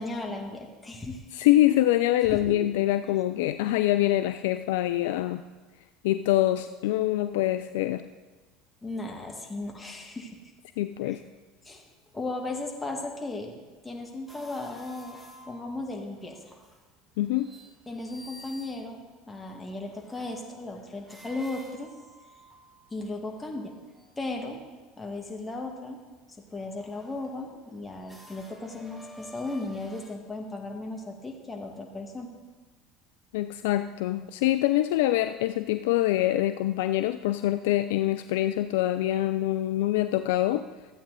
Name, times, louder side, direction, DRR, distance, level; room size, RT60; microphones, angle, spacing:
voice 1, 0.0-1.3 2.3-2.5 8.8-10.3 11.0-11.2 11.6-11.8 12.1-13.6 13.8-15.2 15.4-16.4 17.9-19.0 19.3-21.9 22.9-23.7 24.2-24.6 25.0-26.0 26.5-32.3, left 2 dB, 15° left, 1 dB, 2.0 m, -36 dB
voice 2, 1.3-5.4 6.0-8.1 10.8-11.2 17.2-17.5 33.3-40.6, left 14 dB, 65° left, 10 dB, 0.3 m, -25 dB
sound 1, 14.3-16.9 17.2-24.3 25.5-26.0 26.4-30.2, equal, 5° right, 1.5 m, -52 dB
13.5 x 8.4 x 4.0 m, 1.3 s
figure-of-eight pair, 70°, 0 cm